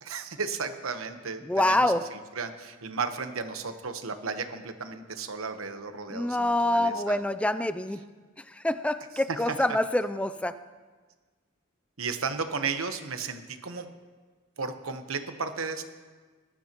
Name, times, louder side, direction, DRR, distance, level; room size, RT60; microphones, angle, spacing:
voice 1, 0.0-7.2 9.3-9.6 12.0-13.9 14.6-15.8, right 5 dB, 85° right, 8 dB, 1.1 m, -34 dB
voice 2, 1.5-2.0 6.1-8.0 8.6-10.5, left 1 dB, 5° left, 12 dB, 0.4 m, -26 dB
21.0 x 12.5 x 3.0 m, 1.4 s
head